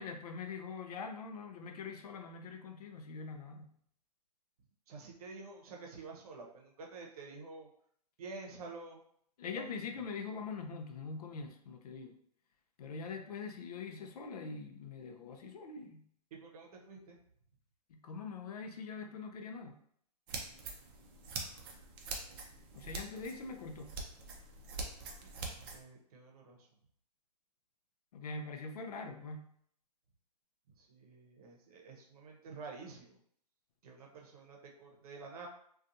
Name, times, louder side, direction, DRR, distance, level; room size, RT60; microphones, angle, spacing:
voice 1, 0.0-3.8 9.4-12.2 12.8-16.1 17.9-19.8 22.7-23.9 28.1-29.5, left 4 dB, 65° left, 5 dB, 0.5 m, -43 dB
voice 2, 4.9-7.7 8.2-9.0 9.5-9.7 16.3-17.2 25.2-25.3 25.7-26.7 30.8-33.2 33.8-35.5, right 4 dB, 60° right, 0 dB, 0.8 m, -49 dB
sound 1, 20.3-25.8, right 3 dB, 35° right, 0.5 m, -44 dB
2.5 x 2.3 x 2.6 m, 0.65 s
hypercardioid pair, 135°, 21 cm